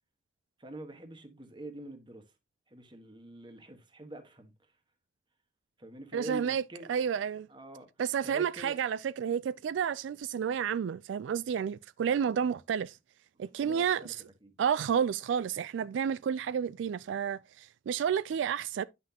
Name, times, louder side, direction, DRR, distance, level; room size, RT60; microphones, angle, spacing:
voice 1, 0.6-2.3 2.7-4.5 5.8-6.9 7.5-7.9 8.2-8.8 13.6-14.1 14.4-14.6, right 1 dB, 25° right, 1.3 m, -45 dB
voice 2, 6.1-6.6 6.9-7.5 8.0-13.0 13.4-14.2 14.6-18.8, right 7 dB, 80° right, 0.3 m, -30 dB
9.6 x 5.9 x 2.8 m
head